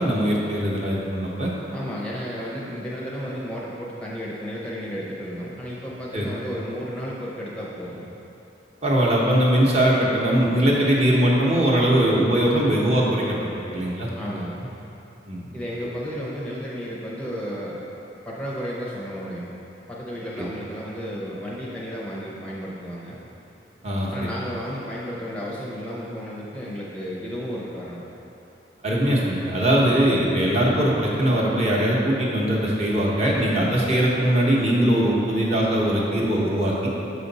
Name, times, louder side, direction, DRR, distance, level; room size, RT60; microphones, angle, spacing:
voice 1, 0.0-1.5 6.1-6.3 8.8-14.4 15.3-15.5 20.4-20.5 23.8-24.1 28.8-36.9, right 1 dB, 35° right, -4 dB, 0.9 m, -21 dB
voice 2, 1.7-8.1 14.2-14.6 15.5-17.8 18.2-19.5 19.9-23.2 24.1-28.0, equal, 5° left, -6 dB, 0.6 m, -33 dB
6.7 x 5.0 x 4.0 m, 2.9 s
head